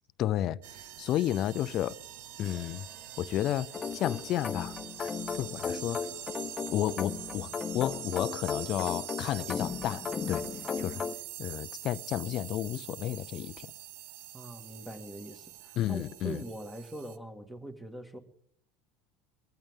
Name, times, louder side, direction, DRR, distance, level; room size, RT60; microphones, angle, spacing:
voice 1, 0.2-2.0 2.4-2.8 3.2-6.0 6.7-10.5 10.8-11.0 11.4-13.7 15.8-16.4, left 12 dB, 50° left, 0.5 m, -32 dB
sound 1, 0.6-17.2, right 12 dB, 70° right, 0.8 m, -44 dB
sound 2, 2.4-6.7, right 2 dB, 40° right, 4.6 m, -60 dB
sound 3, 3.7-11.1, left 6 dB, 30° left, 0.8 m, -36 dB
voice 2, 14.3-18.2, right 1 dB, 10° right, 1.9 m, -42 dB
21.5 x 15.0 x 3.7 m
hypercardioid pair, 90°, 0 cm